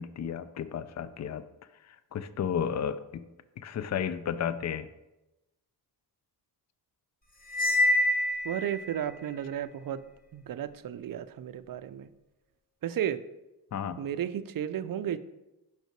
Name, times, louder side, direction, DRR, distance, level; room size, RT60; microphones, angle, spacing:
voice 1, 0.0-1.4 2.1-3.2 3.6-4.9 13.7-14.0, left 8 dB, 45° left, 14 dB, 0.4 m, -33 dB
Cymbal, 7.5-8.9, left 1 dB, 20° left, 1.3 m, -26 dB
voice 2, 8.4-10.0 10.3-12.1 12.8-13.2 14.0-15.2, right 10 dB, 55° right, 13 dB, 0.5 m, -33 dB
5.5 x 4.8 x 4.5 m, 0.99 s
cardioid pair, 70°, 41 cm